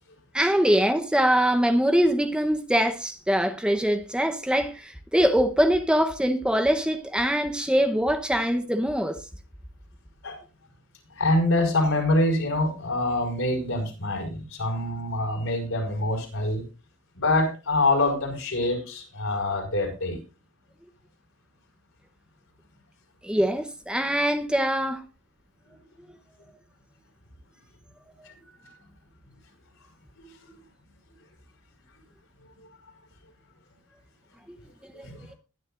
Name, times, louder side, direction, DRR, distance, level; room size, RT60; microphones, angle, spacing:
voice 1, 0.3-9.2 23.2-25.0 35.0-35.1, equal, 5° right, 0.9 m, -23 dB
voice 2, 11.2-16.6 17.2-20.2 28.3-28.4 28.6-28.7 30.2-30.6 35.0-35.2, left 2 dB, 70° left, 5.5 m, -25 dB
21.5 x 10.0 x 2.5 m
head